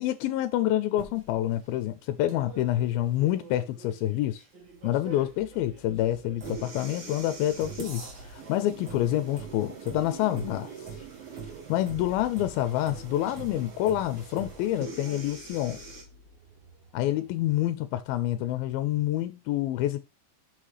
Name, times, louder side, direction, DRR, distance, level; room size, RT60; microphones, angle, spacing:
voice 1, 0.0-4.4 4.8-10.7 11.7-15.8 16.9-20.0, left 13 dB, 90° left, 2.4 m, -27 dB
sound 1, 1.0-16.0, right 4 dB, 45° right, 1.6 m, -44 dB
sound 2, 4.6-17.8, right 6 dB, 85° right, 2.9 m, -48 dB
6.2 x 5.6 x 3.2 m
omnidirectional pair, 4.2 m